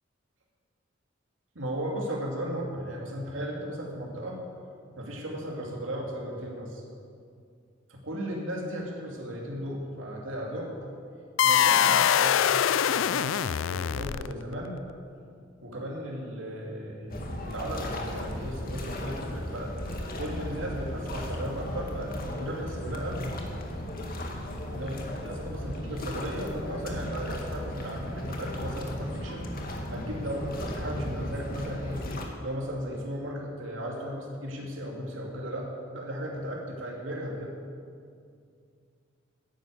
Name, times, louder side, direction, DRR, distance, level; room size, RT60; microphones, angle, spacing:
voice 1, 1.5-4.4 4.9-6.8 7.9-10.8 11.4-12.4 12.9-14.8 15.6-19.7 20.2-23.3 24.7-25.0 25.2-29.4 29.9-32.0 32.4-37.5, equal, 80° right, -2 dB, 2.6 m, -36 dB
sound 1, 11.4-14.5, left 9 dB, 75° left, 0.4 m, -23 dB
sound 2, 17.1-32.2, left 1 dB, 50° left, 1.8 m, -35 dB
11.5 x 10.0 x 8.4 m, 2.3 s
head